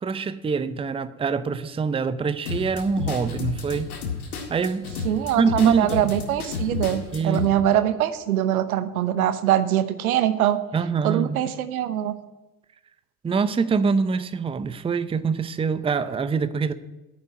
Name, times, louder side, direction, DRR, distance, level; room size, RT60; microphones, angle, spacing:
voice 1, 0.0-3.9 4.5-4.9 5.4-6.0 7.1-7.4 10.7-11.4 13.2-16.7, right 5 dB, 15° right, 14 dB, 0.6 m, -24 dB
sound 1, 2.5-7.5, left 5 dB, 80° left, 2.0 m, -31 dB
voice 2, 5.0-10.6 11.0-12.1, right 11 dB, 75° right, 12 dB, 0.9 m, -23 dB
9.9 x 7.3 x 9.3 m, 1.0 s
figure-of-eight pair, 65°, 44 cm